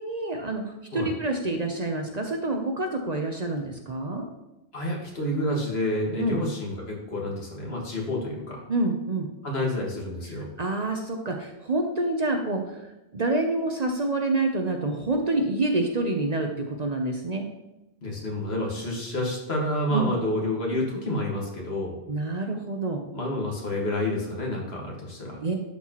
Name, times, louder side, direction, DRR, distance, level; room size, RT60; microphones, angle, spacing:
voice 1, 0.0-4.3 6.2-6.3 8.7-9.3 10.6-12.9 13.1-17.4 19.9-20.1 22.1-23.0 25.4-25.6, right 2 dB, 45° right, 3 dB, 0.7 m, -27 dB
voice 2, 4.7-8.6 9.4-10.5 18.0-22.0 23.1-25.4, left 1 dB, 65° left, -1 dB, 1.8 m, -29 dB
11.0 x 4.5 x 2.9 m, 0.98 s
omnidirectional pair, 1.1 m